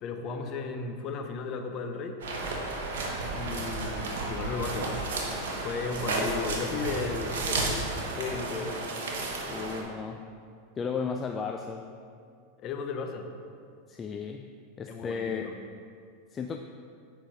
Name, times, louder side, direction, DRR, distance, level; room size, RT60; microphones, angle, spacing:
voice 1, 0.0-2.2 3.3-5.0 5.6-7.9 8.2-8.8 12.6-13.3 14.9-15.6, left 4 dB, 45° left, 5 dB, 0.9 m, -35 dB
sound 1, 2.2-9.8, right 3 dB, 75° right, 1.2 m, -32 dB
voice 2, 6.1-6.5 9.5-10.2 10.8-11.9 13.9-14.5 14.8-15.6 16.3-16.6, left 6 dB, 25° left, 4 dB, 0.4 m, -34 dB
7.6 x 5.1 x 4.9 m, 2.3 s
hypercardioid pair, 95°, 0 cm